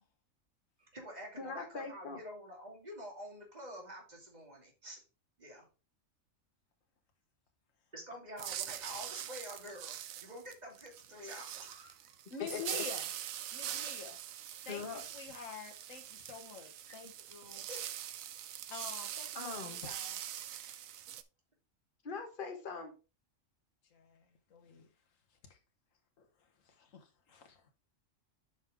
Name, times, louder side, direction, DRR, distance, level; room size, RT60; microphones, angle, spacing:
voice 1, 0.8-5.0 5.4-5.7 7.9-12.2 16.9-17.0 17.7-17.8, equal, 30° right, 2.6 m, -48 dB
voice 2, 1.4-2.2 12.5-12.8 14.7-15.0 19.3-19.8 22.0-22.9, left 4 dB, 40° left, 1.6 m, -41 dB
sound 1, 8.4-21.2, right 11 dB, 85° right, 1.0 m, -43 dB
voice 3, 12.3-13.1 13.5-14.2 14.6-17.7 18.7-20.2 23.9-24.9 25.3-25.6 26.2-27.7, left 5 dB, 75° left, 1.7 m, -48 dB
8.1 x 5.3 x 3.6 m
omnidirectional pair, 1.4 m